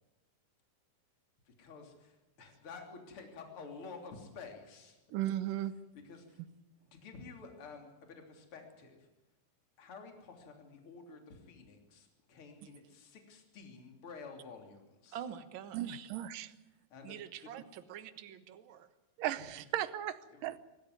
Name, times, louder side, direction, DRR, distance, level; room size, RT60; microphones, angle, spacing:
voice 1, 1.5-5.0 6.0-6.4 6.9-9.1 9.8-15.2 16.9-17.2 19.4-19.5 20.3-20.6, left 4 dB, 40° left, 3 dB, 3.8 m, -51 dB
voice 2, 5.1-5.8 15.7-16.5 19.2-20.6, right 12 dB, 75° right, 13 dB, 2.5 m, -36 dB
voice 3, 15.1-16.1 17.0-18.9, right 9 dB, 60° right, 9 dB, 1.3 m, -46 dB
24.5 x 15.0 x 9.4 m, 1.0 s
omnidirectional pair, 4.0 m